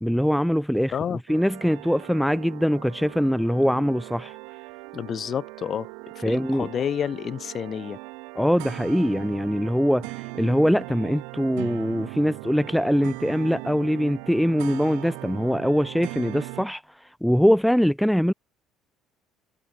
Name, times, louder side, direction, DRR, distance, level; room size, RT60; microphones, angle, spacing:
voice 1, 0.0-4.4 6.2-6.7 8.3-18.3, equal, ahead, 2.3 m, -23 dB
voice 2, 0.9-1.2 4.9-5.9 6.2-8.0, left 8 dB, 45° left, 4.3 m, -29 dB
sound 1, 1.3-16.7, right 33 dB, 70° right, 4.8 m, -39 dB
hypercardioid pair, 55°, 0 cm